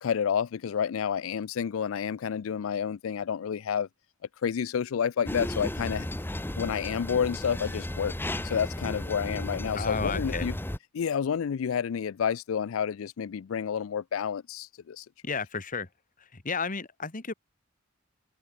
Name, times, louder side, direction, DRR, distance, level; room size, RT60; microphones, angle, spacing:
voice 1, 0.0-3.9 4.4-6.1 6.6-8.1 8.4-10.5 10.9-15.0, left 7 dB, 80° left, 0.4 m, -29 dB
sound 1, 5.3-10.8, left 1 dB, 10° left, 0.9 m, -34 dB
voice 2, 9.7-10.5 15.2-15.9 16.3-17.3, left 4 dB, 40° left, 1.7 m, -32 dB
head